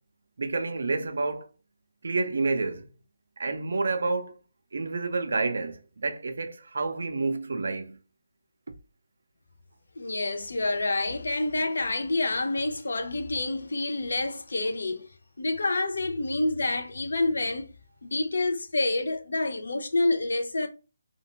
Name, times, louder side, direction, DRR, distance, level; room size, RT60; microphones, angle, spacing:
voice 1, 0.4-1.5 2.0-2.9 3.4-4.4 4.7-8.0, right 3 dB, 65° right, 0.5 m, -29 dB
voice 2, 10.0-15.1 15.4-17.7 18.0-20.7, left 2 dB, 75° left, 0.5 m, -28 dB
2.5 x 2.2 x 2.9 m
hypercardioid pair, 175°, 0 cm